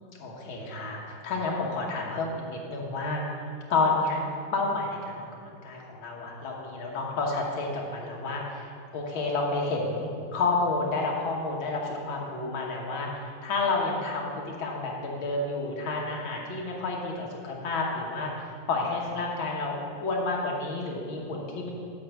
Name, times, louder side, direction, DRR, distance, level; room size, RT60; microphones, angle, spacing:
voice 1, 0.2-4.2 4.5-21.7, left 3 dB, 65° left, -2 dB, 2.0 m, -30 dB
8.5 x 4.5 x 6.5 m, 2.3 s
omnidirectional pair, 2.4 m